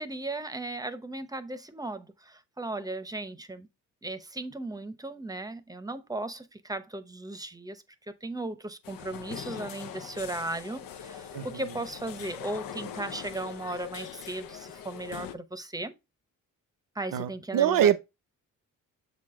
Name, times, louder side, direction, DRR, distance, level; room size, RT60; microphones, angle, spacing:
voice 1, 0.0-3.7 4.0-7.8 8.2-15.9 17.0-17.9, right 2 dB, 10° right, 0.7 m, -36 dB
sound 1, 8.8-15.4, left 9 dB, 90° left, 0.7 m, -42 dB
voice 2, 11.3-11.8 17.1-18.0, right 10 dB, 75° right, 0.8 m, -25 dB
7.3 x 4.2 x 3.6 m
cardioid pair, 110°, 34 cm